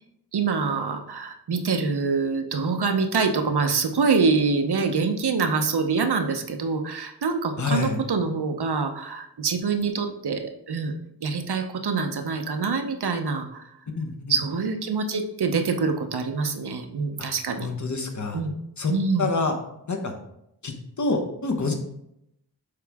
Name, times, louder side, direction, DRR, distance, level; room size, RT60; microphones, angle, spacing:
voice 1, 0.3-10.9 11.2-13.6 14.3-17.7 18.3-18.5 18.9-19.3, right 4 dB, 70° right, 6 dB, 0.9 m, -25 dB
voice 2, 7.6-8.0 14.0-14.1 17.6-18.4 18.8-18.9 19.2-19.5 19.9-20.1 20.6-21.7, left 3 dB, 45° left, 5 dB, 1.1 m, -26 dB
6.7 x 4.8 x 3.5 m, 0.79 s
wide cardioid pair, 100°, 40 cm